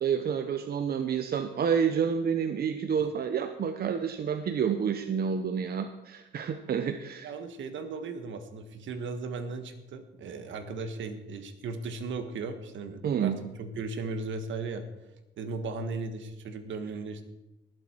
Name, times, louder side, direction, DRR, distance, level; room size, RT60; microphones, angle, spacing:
voice 1, 0.0-7.3 13.0-13.4, right 7 dB, 50° right, 8 dB, 0.8 m, -29 dB
voice 2, 7.2-14.8 15.4-17.2, right 4 dB, 70° right, 8 dB, 1.5 m, -37 dB
19.0 x 7.7 x 4.5 m, 0.97 s
cardioid pair, 90°, 20 cm